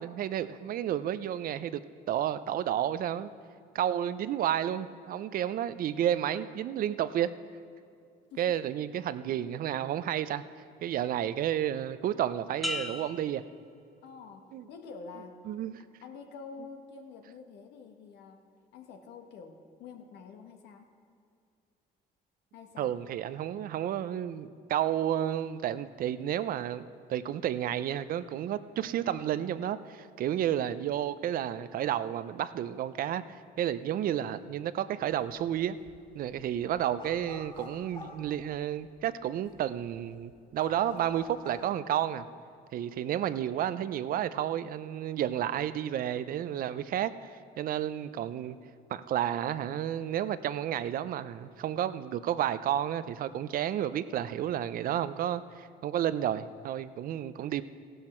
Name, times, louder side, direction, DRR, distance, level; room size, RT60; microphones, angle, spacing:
voice 1, 0.0-1.8 2.1-3.3 3.7-7.3 8.4-10.4 10.8-13.4 14.5-14.6 15.5-15.8 22.8-35.8 36.1-42.2 42.7-48.6 48.9-57.6, right 11 dB, 60° right, 14 dB, 0.5 m, -31 dB
sound 1, 12.6-14.4 14.9-15.4, left 2 dB, ahead, 0.9 m, -39 dB
voice 2, 14.0-15.4 16.0-18.4 18.7-20.9 22.5-23.0, left 5 dB, 80° left, 5 dB, 1.3 m, -47 dB
sound 2, 35.1-35.5 35.8-39.0 39.4-39.5 39.8-41.7, left 2 dB, 30° left, 3.5 m, -47 dB
15.0 x 12.0 x 4.4 m, 2.4 s
cardioid pair, 110°, 17 cm